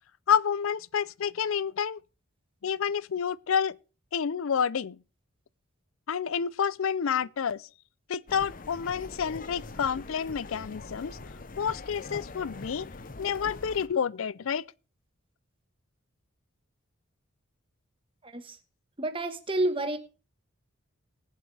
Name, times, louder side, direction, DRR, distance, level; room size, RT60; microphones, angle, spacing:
voice 1, 0.3-2.0 2.6-3.8 4.1-5.0 6.1-7.7 8.1-11.2 11.6-12.9 13.2-14.6, left 7 dB, 75° left, 0.5 m, -29 dB
sound 1, 8.3-13.9, left 3 dB, 40° left, 0.7 m, -43 dB
voice 2, 18.2-18.6 19.0-20.0, right 1 dB, 25° right, 1.3 m, -29 dB
20.0 x 7.5 x 3.3 m
head